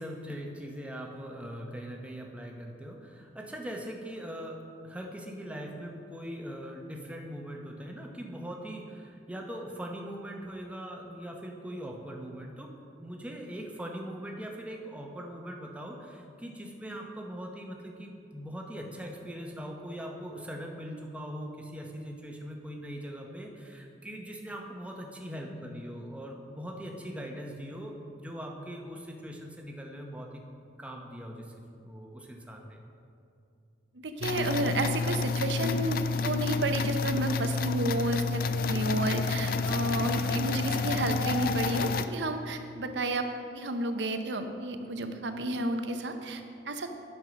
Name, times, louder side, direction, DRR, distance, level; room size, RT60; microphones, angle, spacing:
voice 1, 0.0-30.4 30.8-31.5 31.8-32.8, equal, 5° right, 1 dB, 0.8 m, -41 dB
voice 2, 33.9-43.3 43.5-46.9, right 2 dB, 85° right, 7 dB, 0.7 m, -31 dB
sound 1, 34.2-42.1, left 4 dB, 55° left, 0.4 m, -29 dB
9.5 x 5.5 x 6.1 m, 2.5 s
head